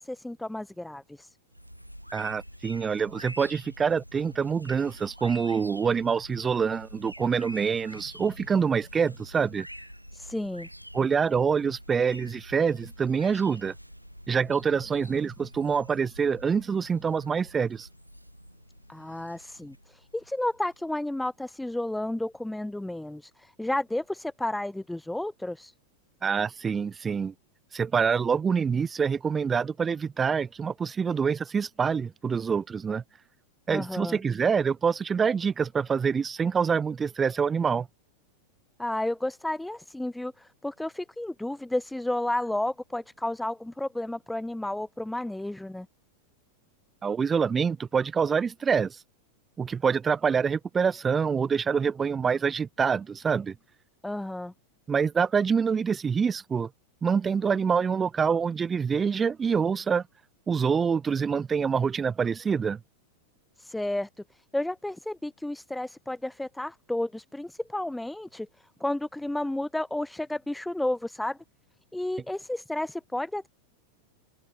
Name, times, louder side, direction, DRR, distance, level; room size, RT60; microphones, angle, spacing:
voice 1, 0.0-1.4 10.1-10.7 18.9-25.7 33.7-34.2 38.8-45.9 54.0-54.5 63.6-71.4 71.9-73.5, left 1 dB, 5° left, 1.2 m, -32 dB
sound 1, 1.5-20.9, equal, 90° right, 2.4 m, -47 dB
voice 2, 2.1-9.7 10.9-13.7 14.3-17.9 26.2-27.3 27.7-33.0 33.7-37.9 47.0-49.0 49.6-53.5 54.9-56.7 57.0-60.0 60.5-62.8, right 6 dB, 20° right, 0.5 m, -26 dB
open air
figure-of-eight pair, 90°, 0 cm